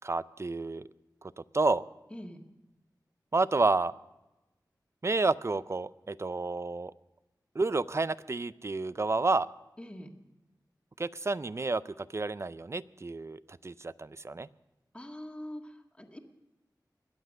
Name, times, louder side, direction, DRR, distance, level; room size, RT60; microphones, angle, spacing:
voice 1, 0.0-0.9 1.2-1.8 3.3-3.9 5.0-6.9 7.6-9.5 11.0-14.5, right 3 dB, 40° right, 17 dB, 0.4 m, -30 dB
voice 2, 2.1-2.4 9.8-10.1 14.9-16.2, left 1 dB, 15° left, 3 dB, 1.7 m, -43 dB
22.0 x 8.1 x 6.4 m, 1.0 s
wide cardioid pair, 65°, 8 cm